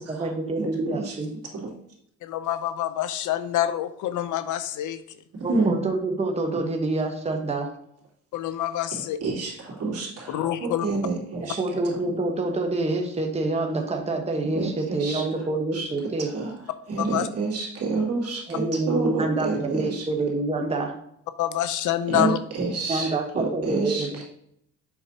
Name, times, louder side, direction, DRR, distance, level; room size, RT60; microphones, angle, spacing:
voice 1, 0.1-1.3 5.4-7.7 11.4-16.3 18.5-20.9 22.9-24.1, right 2 dB, 20° right, 2 dB, 1.1 m, -27 dB
voice 2, 2.2-5.2 8.3-9.2 10.3-10.9 17.0-17.3 21.4-22.4, left 12 dB, 80° left, 12 dB, 0.6 m, -26 dB
voice 3, 9.2-11.6 11.9-12.0 14.5-15.2 15.7-15.9 16.2-16.6 16.9-20.0 22.1-24.2, right 3 dB, 55° right, -3 dB, 2.6 m, -28 dB
7.2 x 5.4 x 2.8 m, 0.72 s
cardioid pair, 90°, 30 cm